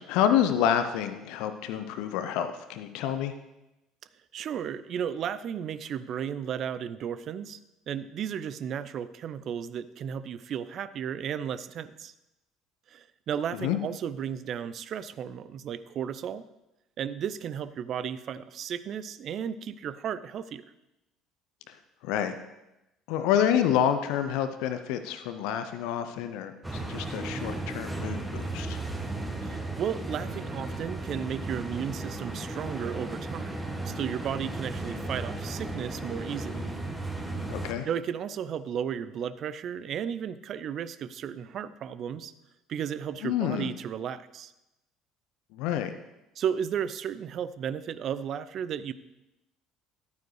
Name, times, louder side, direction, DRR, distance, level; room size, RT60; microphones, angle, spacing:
voice 1, 0.0-3.3 13.5-13.8 21.7-21.8 22.0-22.4 23.1-28.8 37.5-37.9 43.2-43.7 45.5-45.9, left 9 dB, 65° left, 9 dB, 0.5 m, -28 dB
voice 2, 4.3-7.6 7.9-12.1 12.9-16.4 17.0-20.6 29.4-36.7 37.8-42.3 42.7-44.5 46.4-48.9, right 8 dB, 50° right, 15 dB, 0.4 m, -34 dB
sound 1, 26.6-37.7, right 2 dB, 10° right, 1.3 m, -35 dB
11.5 x 9.2 x 3.1 m, 0.92 s
figure-of-eight pair, 60°, 0 cm